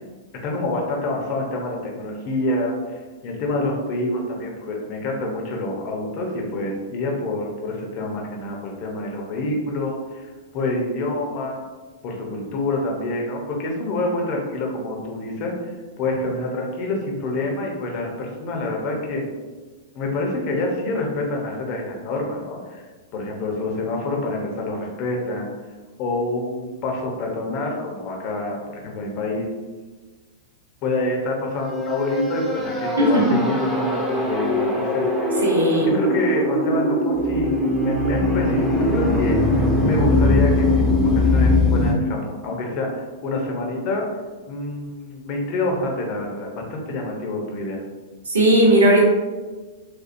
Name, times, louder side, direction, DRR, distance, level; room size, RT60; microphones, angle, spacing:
voice 1, 0.4-2.8 3.2-10.3 10.5-11.6 12.0-15.7 16.0-19.2 19.9-22.8 23.1-25.5 26.0-29.5 30.8-35.3 35.8-44.1 44.5-47.8, left 2 dB, 40° left, 0 dB, 0.8 m, -27 dB
sound 1, 31.6-41.9, left 1 dB, 5° left, 0.7 m, -21 dB
voice 2, 35.4-35.9 48.3-49.0, right 1 dB, 80° right, -2 dB, 0.9 m, -16 dB
4.3 x 2.3 x 2.6 m, 1.3 s
figure-of-eight pair, 100°, 0 cm